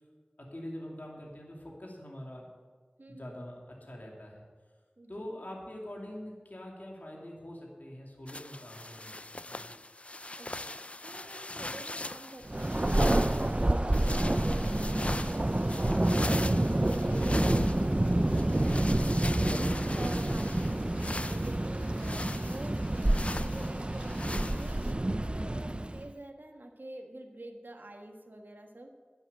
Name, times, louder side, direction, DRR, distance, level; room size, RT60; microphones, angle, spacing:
voice 1, 0.4-2.4 3.1-4.4 5.1-9.7, left 1 dB, 60° left, -2 dB, 2.5 m, -44 dB
voice 2, 3.0-3.4 5.0-5.4 10.4-10.6 11.0-16.6 16.9-24.2 24.5-28.9, right 1 dB, 75° right, 3 dB, 1.4 m, -47 dB
sound 1, 8.3-24.9, left 2 dB, 40° left, 0.4 m, -40 dB
Thunder, 12.5-26.1, right 1 dB, 35° right, 0.5 m, -28 dB
11.0 x 8.0 x 8.5 m, 1.5 s
wide cardioid pair, 40°, 3 cm